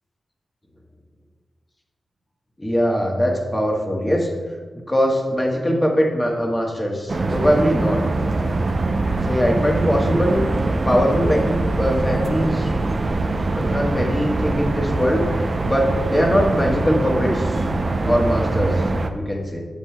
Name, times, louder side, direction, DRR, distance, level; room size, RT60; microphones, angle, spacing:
voice 1, 2.6-4.3 4.7-8.0 9.2-10.4 10.8-12.7 13.6-15.2 15.6-17.6 18.0-18.8 19.1-19.6, equal, 15° left, 0 dB, 1.4 m, -21 dB
sound 1, 7.1-19.1, right 2 dB, 50° right, 0.7 m, -23 dB
11.0 x 7.6 x 2.3 m, 1.5 s
cardioid pair, 60°, 0 cm